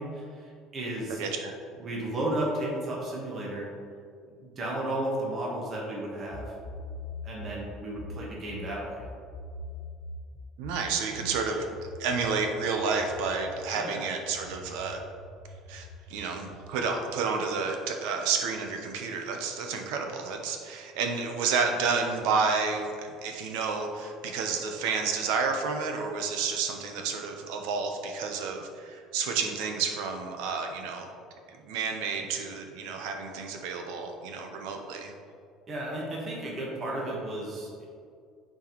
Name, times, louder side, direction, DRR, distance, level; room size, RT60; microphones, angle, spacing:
voice 1, 0.0-1.2 1.8-3.7 4.4-6.4 7.2-9.0 13.7-14.0 35.7-37.9, right 1 dB, 25° right, -4 dB, 1.3 m, -33 dB
voice 2, 1.1-1.5 10.6-11.6 12.0-15.0 15.7-31.1 31.7-35.1, right 5 dB, 85° right, 3 dB, 0.8 m, -30 dB
sound 1, 6.3-13.6 14.3-16.8, left 2 dB, 50° left, 1.2 m, -43 dB
8.7 x 4.6 x 3.1 m, 2.3 s
cardioid pair, 170°, 0 cm